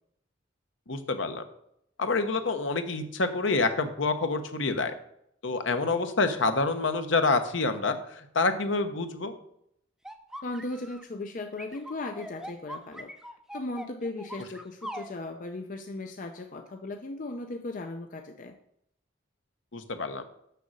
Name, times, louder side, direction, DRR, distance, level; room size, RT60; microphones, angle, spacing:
voice 1, 0.9-1.4 2.0-4.9 5.4-9.3 19.7-20.2, left 3 dB, 65° left, 8 dB, 0.9 m, -27 dB
sound 1, 10.0-11.0 11.6-15.1, right 1 dB, ahead, 0.6 m, -41 dB
voice 2, 10.4-13.1 13.5-18.6, left 2 dB, 40° left, 5 dB, 0.5 m, -37 dB
6.8 x 6.3 x 6.3 m, 0.74 s
head